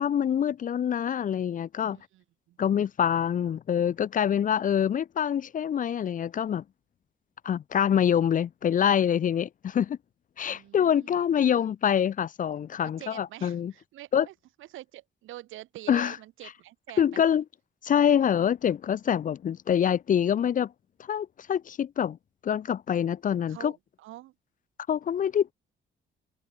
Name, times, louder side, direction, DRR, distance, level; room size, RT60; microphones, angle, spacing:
voice 1, 0.0-2.0 2.6-6.6 7.4-10.0 10.4-13.7 14.1-14.3 15.9-16.2 17.0-17.4 17.8-20.7 21.0-22.2 22.4-23.7 24.9-25.5, left 9 dB, 40° left, 0.5 m, -25 dB
voice 2, 1.9-2.6 10.5-11.7 12.8-17.2 23.5-24.3, right 15 dB, 85° right, 3.2 m, -47 dB
cardioid pair, 90°, 20 cm